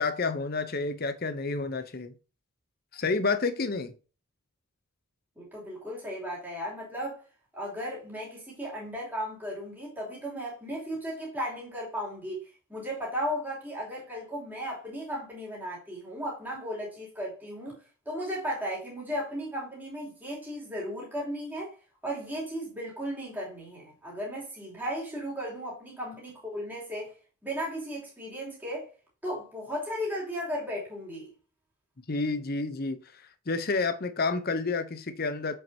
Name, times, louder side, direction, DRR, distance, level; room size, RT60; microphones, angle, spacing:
voice 1, 0.0-2.1 2.9-3.9 32.1-33.0 33.5-35.6, left 3 dB, 45° left, 0.7 m, -29 dB
voice 2, 5.4-7.2 7.5-12.4 12.7-17.8 18.0-21.8 22.0-27.1 27.4-28.9 29.2-31.3, equal, 10° right, 3.0 m, -35 dB
7.5 x 5.6 x 2.8 m
head